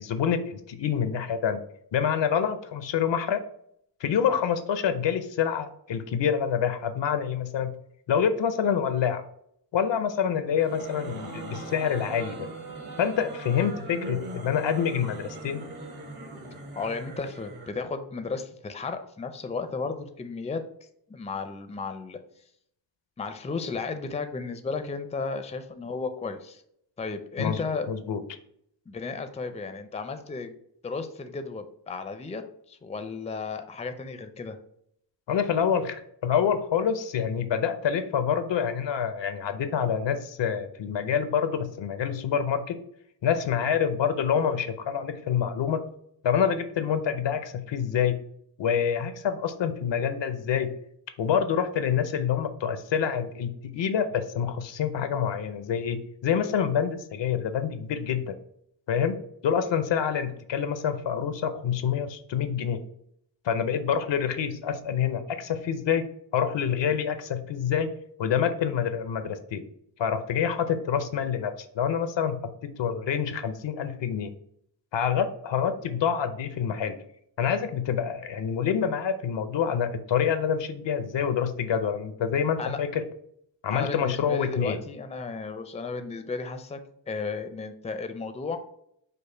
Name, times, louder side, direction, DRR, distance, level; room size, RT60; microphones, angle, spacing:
voice 1, 0.0-1.6 1.9-3.4 4.0-7.7 8.1-9.2 9.7-12.5 13.0-15.6 27.4-27.6 27.9-28.2 35.3-42.8 43.2-45.8 46.2-48.2 48.6-50.7 51.2-58.4 58.9-59.2 59.4-62.8 63.4-66.1 66.3-67.9 68.2-69.6 70.0-74.3 74.9-77.0 77.4-83.0 83.6-84.8, left 7 dB, 80° left, 10 dB, 0.6 m, -27 dB
sound 1, 10.5-17.8, right 2 dB, 55° right, 1.3 m, -40 dB
voice 2, 16.7-22.2 23.2-26.6 27.0-27.9 28.9-30.5 30.8-34.6 82.6-82.8 83.7-86.8 87.1-88.6, left 4 dB, 15° left, 8 dB, 0.4 m, -34 dB
5.3 x 2.1 x 4.3 m, 0.70 s
wide cardioid pair, 95°, 43 cm